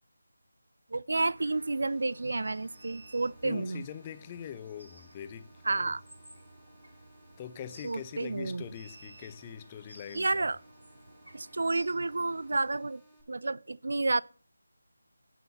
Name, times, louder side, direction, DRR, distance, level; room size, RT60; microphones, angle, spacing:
voice 1, 0.9-3.9 5.7-6.0 7.8-8.6 10.1-10.6 11.3-13.0 13.3-14.2, right 3 dB, 60° right, 0.4 m, -30 dB
sound 1, 1.1-12.7, right 1 dB, 85° right, 2.5 m, -55 dB
sound 2, 1.5-13.2, right 1 dB, 10° right, 2.6 m, -62 dB
voice 2, 3.4-5.9 7.4-10.4, left 9 dB, 20° left, 0.6 m, -43 dB
16.5 x 6.0 x 4.0 m
figure-of-eight pair, 160°, 0 cm